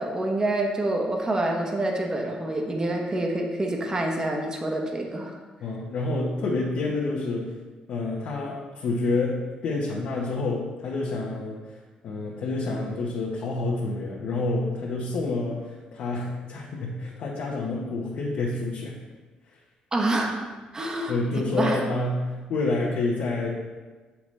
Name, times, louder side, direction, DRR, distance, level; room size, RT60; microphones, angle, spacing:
voice 1, 0.0-5.4 19.9-20.4 20.7-21.1 21.5-21.8, right 1 dB, 25° right, 1 dB, 1.0 m, -27 dB
voice 2, 5.6-7.6 7.9-19.0 20.8-23.5, left 2 dB, 75° left, -4 dB, 1.0 m, -28 dB
7.0 x 5.7 x 3.3 m, 1.3 s
cardioid pair, 85°, 3 cm